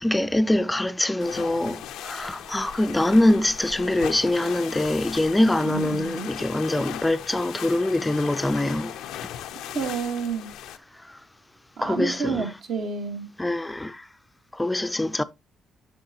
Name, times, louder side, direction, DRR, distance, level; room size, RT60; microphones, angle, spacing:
voice 1, 0.0-9.0 11.1-11.2 11.8-12.5 13.4-14.0 14.5-15.2, left 1 dB, 10° left, 0.4 m, -24 dB
sound 1, 1.2-10.8, left 11 dB, 90° left, 0.5 m, -38 dB
voice 2, 5.6-6.3 9.7-10.5 11.8-13.3, right 5 dB, 70° right, 1.4 m, -29 dB
8.6 x 5.9 x 2.8 m
cardioid pair, 90°, 0 cm